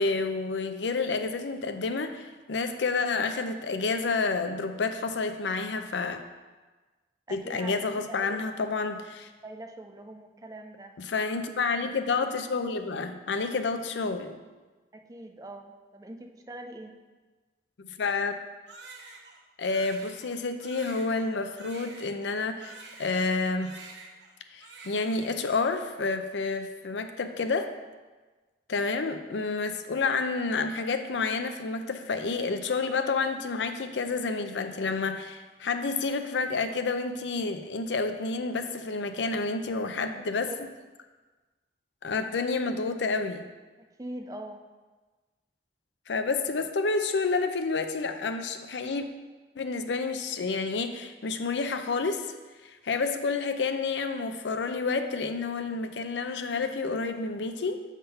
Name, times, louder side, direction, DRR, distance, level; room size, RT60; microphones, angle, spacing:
voice 1, 0.0-6.2 7.3-9.3 11.0-14.4 17.8-18.4 19.6-23.8 24.5-27.7 28.7-40.5 42.0-43.5 46.1-49.1 49.6-52.3 52.6-57.8, left 4 dB, 90° left, 7 dB, 0.5 m, -29 dB
voice 2, 7.3-7.8 8.1-8.4 9.4-11.0 14.9-17.0 39.8-40.6 43.8-44.7, right 1 dB, 20° right, 4 dB, 0.4 m, -43 dB
Crying sobbing, 18.7-23.4 23.6-24.3 24.6-25.6, right 3 dB, 85° right, 0.9 m, -48 dB
7.0 x 3.6 x 5.5 m, 1.3 s
head